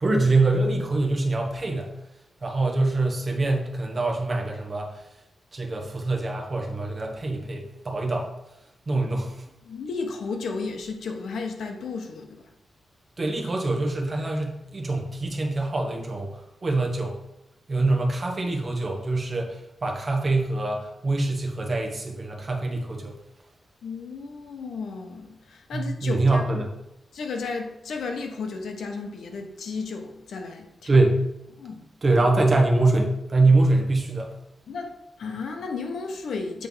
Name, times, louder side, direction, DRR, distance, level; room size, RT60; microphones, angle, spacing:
voice 1, 0.0-1.9 2.4-5.0 5.5-8.3 8.9-9.3 13.2-16.3 16.6-17.2 17.7-23.1 25.7-26.7 30.9-31.2 32.0-34.3, right 2 dB, 30° right, 1.1 m, -24 dB
voice 2, 9.6-12.4 23.8-26.4 27.1-30.9 31.6-31.9 34.7-36.7, left 4 dB, 80° left, 0.9 m, -33 dB
7.8 x 3.4 x 5.5 m
wide cardioid pair, 180°, 0 cm